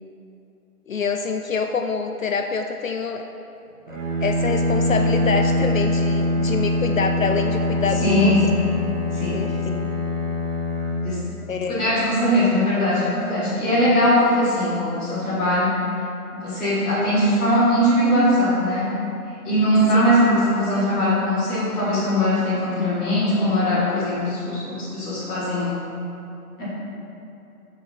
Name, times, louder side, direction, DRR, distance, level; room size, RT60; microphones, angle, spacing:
voice 1, 0.9-3.2 3.9-8.6 9.3-9.9 11.5-12.0 12.7-12.8 19.9-20.0, left 5 dB, 60° left, 5 dB, 0.5 m, -26 dB
Bowed string instrument, 3.9-11.9, left 1 dB, 50° right, 1.2 m, -24 dB
voice 2, 8.0-8.6 9.1-9.5 11.0-11.2 11.7-15.7 16.3-18.9 19.4-25.7 26.6-26.7, equal, 5° left, -15 dB, 0.8 m, -20 dB
5.9 x 4.5 x 5.6 m, 2.8 s
hypercardioid pair, 160°, 46 cm